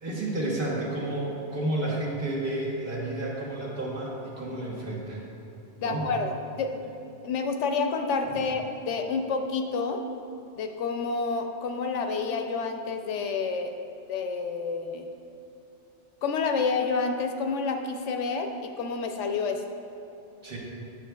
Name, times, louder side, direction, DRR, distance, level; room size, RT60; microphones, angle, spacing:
voice 1, 0.0-5.2 5.8-6.1 8.3-8.4 20.4-20.6, right 1 dB, 50° right, -4 dB, 1.3 m, -31 dB
voice 2, 5.8-6.8 7.2-10.0 10.6-13.7 14.1-15.1 16.2-19.6, left 4 dB, 85° left, 5 dB, 0.9 m, -29 dB
8.8 x 7.3 x 2.3 m, 2.9 s
omnidirectional pair, 1.2 m